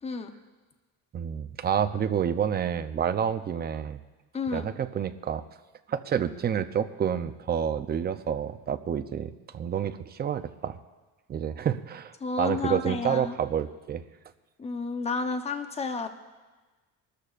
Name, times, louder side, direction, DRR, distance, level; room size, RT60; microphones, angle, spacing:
voice 1, 1.1-4.0 4.5-5.4 5.9-10.8 11.3-14.0, right 8 dB, 25° right, 10 dB, 0.6 m, -29 dB
voice 2, 4.3-4.7 12.2-13.4 14.6-16.1, left 4 dB, 15° left, 7 dB, 0.8 m, -31 dB
23.5 x 13.5 x 2.5 m, 1.3 s
cardioid pair, 145°, 36 cm